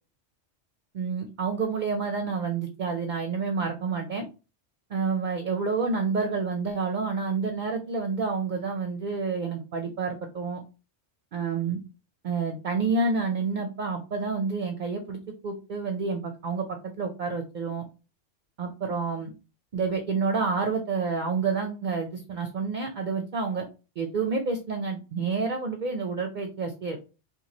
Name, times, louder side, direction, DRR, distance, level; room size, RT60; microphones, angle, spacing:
voice 1, 0.9-4.3 4.9-10.6 11.3-11.8 12.2-15.2 15.4-16.7 17.0-17.8 18.6-19.3 19.7-23.7 24.0-27.0, right 4 dB, 55° right, 4 dB, 0.5 m, -29 dB
3.0 x 2.3 x 4.0 m, 0.31 s
omnidirectional pair, 1.2 m